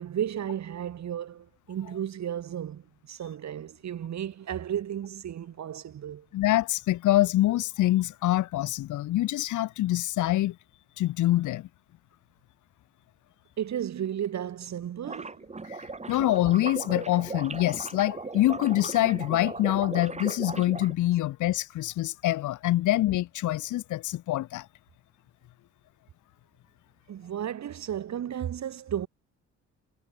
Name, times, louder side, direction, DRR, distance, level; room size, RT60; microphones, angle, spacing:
voice 1, 0.0-6.3 13.6-15.5 27.1-29.1, right 10 dB, 65° right, 6.4 m, -34 dB
voice 2, 6.3-10.6 11.0-11.7 15.7-15.8 16.1-24.7, left 15 dB, 75° left, 1.0 m, -25 dB
sound 1, 15.0-20.9, right 3 dB, 20° right, 4.0 m, -37 dB
cardioid pair, 90°, 30 cm